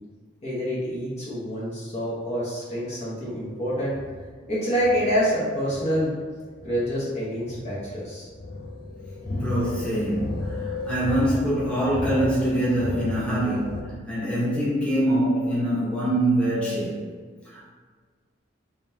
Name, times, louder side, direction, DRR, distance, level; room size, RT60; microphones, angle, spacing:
voice 1, 0.4-4.0 4.5-6.1 6.6-8.3, equal, 35° left, -8 dB, 0.9 m, -27 dB
sound 1, 3.4-13.8, left 2 dB, 55° left, 0.7 m, -34 dB
voice 2, 9.3-17.0 17.5-17.7, right 1 dB, 5° left, -9 dB, 1.1 m, -24 dB
3.9 x 3.4 x 2.7 m, 1.5 s
head